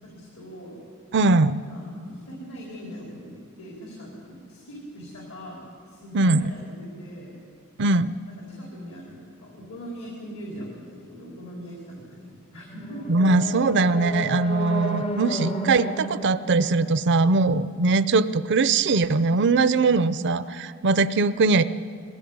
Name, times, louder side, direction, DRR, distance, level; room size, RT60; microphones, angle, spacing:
voice 1, 0.0-0.8 1.7-7.3 7.8-13.3, equal, 70° left, -3 dB, 4.5 m, -41 dB
voice 2, 1.1-1.6 6.1-6.5 7.8-8.1 13.1-21.6, right 3 dB, 55° right, 14 dB, 0.6 m, -21 dB
sound 1, 12.7-17.8, right 1 dB, 30° left, 0.8 m, -33 dB
21.5 x 15.5 x 9.5 m, 2.3 s
head